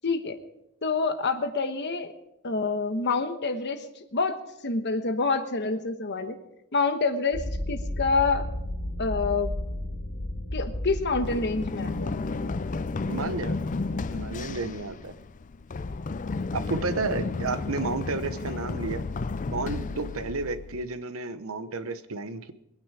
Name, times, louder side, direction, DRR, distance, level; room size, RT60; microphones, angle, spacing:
voice 1, 0.0-0.4 0.8-2.1 2.4-6.4 6.7-8.5 9.0-9.5 10.5-12.1, left 4 dB, 50° left, 9 dB, 1.2 m, -27 dB
sound 1, 7.3-12.7, left 1 dB, 70° left, 3.4 m, -33 dB
Run, 11.2-21.0, left 3 dB, 35° left, 0.4 m, -33 dB
voice 2, 13.1-13.6 14.1-15.1 16.5-19.0 19.5-22.5, right 3 dB, 70° right, 11 dB, 0.9 m, -31 dB
22.0 x 9.6 x 4.8 m, 0.86 s
head